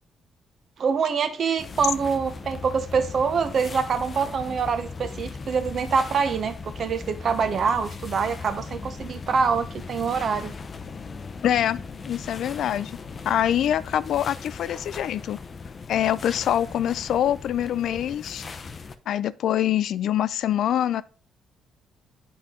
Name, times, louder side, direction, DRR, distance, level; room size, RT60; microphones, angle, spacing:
voice 1, 0.8-10.6, right 6 dB, 55° right, 0.9 m, -25 dB
sound 1, 1.6-19.0, left 4 dB, 40° left, 0.6 m, -38 dB
voice 2, 11.4-12.9 13.3-15.4 15.9-18.5 19.1-21.0, left 10 dB, 75° left, 0.3 m, -25 dB
8.2 x 4.2 x 3.7 m
cardioid pair, 90°, 0 cm